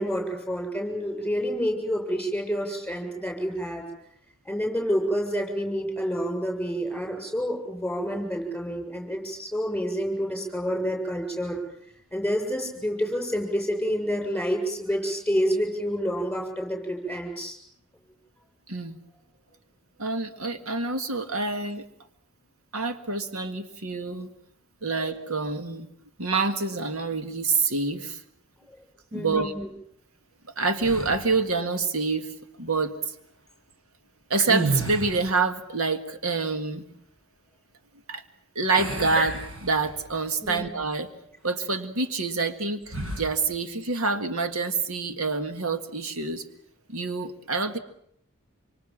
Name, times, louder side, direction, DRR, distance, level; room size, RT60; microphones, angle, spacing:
voice 1, 0.0-3.8 4.4-11.6 12.1-17.6 28.7-28.8 29.1-29.7 39.1-39.2 40.4-40.6, equal, 5° left, 2 dB, 7.4 m, -28 dB
voice 2, 18.7-19.0 20.0-21.8 22.7-24.3 24.8-25.9 26.2-28.2 29.1-29.5 30.6-33.1 34.3-36.9 38.1-38.2 38.6-39.4 39.6-41.1 41.4-46.4 46.9-47.8, right 4 dB, 85° right, 8 dB, 1.8 m, -27 dB
sound 1, 30.8-31.5 34.4-35.5 38.7-40.2 40.6-40.8 42.9-43.4, right 2 dB, 70° right, 6.5 m, -31 dB
26.5 x 25.0 x 7.4 m, 0.72 s
head